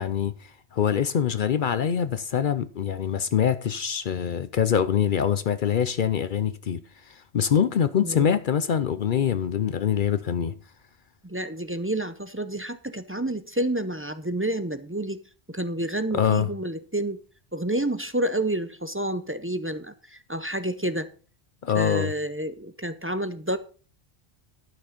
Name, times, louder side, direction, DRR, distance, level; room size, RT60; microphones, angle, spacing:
voice 1, 0.0-6.8 7.1-10.5 16.1-16.5 21.6-22.1, left 8 dB, 55° left, 0.7 m, -24 dB
voice 2, 8.0-8.3 11.2-15.2 15.5-17.2 17.5-21.1 21.7-23.6, right 1 dB, 15° right, 0.5 m, -29 dB
11.5 x 6.1 x 5.1 m
omnidirectional pair, 1.1 m